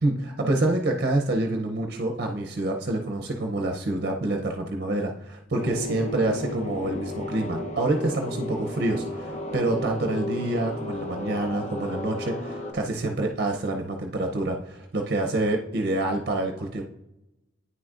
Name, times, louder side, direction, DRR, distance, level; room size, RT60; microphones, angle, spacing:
voice 1, 0.0-16.8, right 2 dB, 55° right, 3 dB, 0.6 m, -27 dB
sound 1, 5.6-12.7, left 1 dB, 35° left, 0.8 m, -34 dB
9.3 x 6.1 x 2.5 m, 0.92 s
head